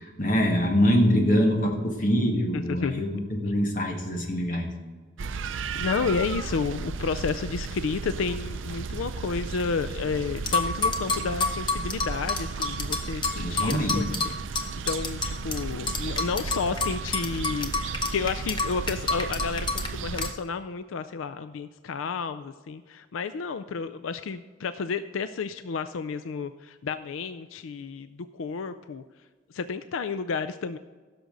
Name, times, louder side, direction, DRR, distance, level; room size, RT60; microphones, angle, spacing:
voice 1, 0.0-4.7 13.4-14.0, equal, 40° left, 1 dB, 1.8 m, -24 dB
voice 2, 2.5-3.0 3.4-3.5 5.7-14.3 14.9-29.0 29.5-30.8, left 5 dB, 90° left, 12 dB, 0.4 m, -31 dB
sound 1, 5.2-20.3, right 5 dB, 75° right, 0.5 m, -34 dB
sound 2, 10.5-15.6 15.9-19.9 20.2-20.3, left 3 dB, 25° left, 0.8 m, -28 dB
16.0 x 6.6 x 3.9 m, 1.4 s
head